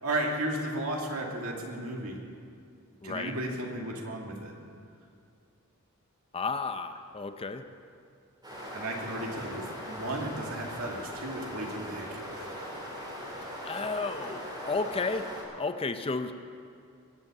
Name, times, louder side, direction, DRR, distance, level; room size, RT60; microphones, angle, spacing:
voice 1, 0.0-2.2 3.0-4.5 8.7-12.6, right 1 dB, 75° right, 0 dB, 2.5 m, -34 dB
voice 2, 3.0-3.3 6.3-7.6 13.6-15.3 15.5-16.3, left 4 dB, 25° left, 9 dB, 0.6 m, -32 dB
sound 1, 8.4-15.4, equal, 20° right, 4.1 m, -40 dB
22.5 x 8.1 x 7.3 m, 2.4 s
head